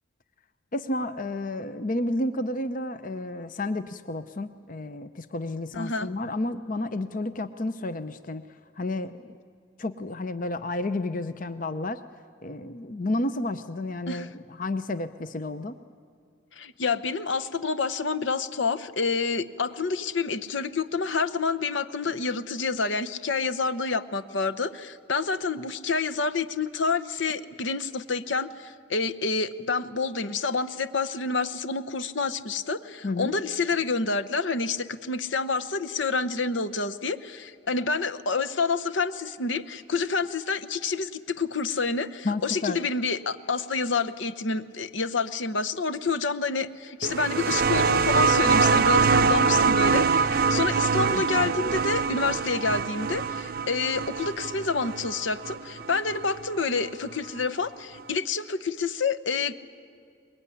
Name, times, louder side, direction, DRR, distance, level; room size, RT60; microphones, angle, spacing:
voice 1, 0.7-8.4 8.8-9.2 9.8-12.0 12.4-15.8 33.0-33.3 42.2-42.8 51.1-51.5, left 2 dB, 40° left, 11 dB, 0.7 m, -31 dB
voice 2, 5.7-6.1 14.1-14.3 16.5-59.5, left 4 dB, 70° left, 11 dB, 0.9 m, -28 dB
sound 1, 47.0-56.3 57.4-57.5, right 5 dB, 50° right, 0.6 m, -24 dB
24.0 x 21.5 x 9.9 m, 2.4 s
head